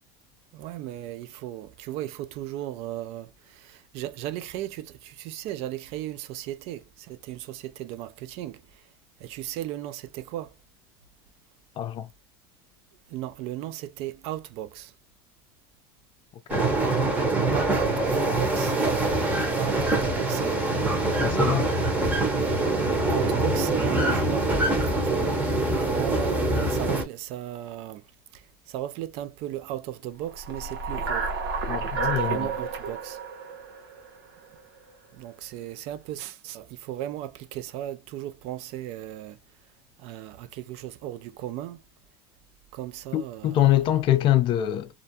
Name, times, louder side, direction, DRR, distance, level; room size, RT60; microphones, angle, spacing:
voice 1, 0.5-8.6 9.2-10.5 13.1-14.9 17.5-21.3 22.4-22.6 22.9-24.5 25.0-28.0 28.7-31.3 31.9-33.2 35.1-39.4 40.0-41.8 42.7-43.7, right 13 dB, 55° right, 0.4 m, -36 dB
voice 2, 11.8-12.1 16.5-16.6 21.2-21.7 31.7-32.5 43.1-44.9, left 12 dB, 40° left, 0.4 m, -24 dB
sound 1, 16.5-27.0, right 2 dB, 15° right, 0.9 m, -24 dB
sound 2, 30.3-34.6, right 5 dB, 90° right, 1.0 m, -31 dB
2.5 x 2.1 x 2.7 m
supercardioid pair, 125°, 12 cm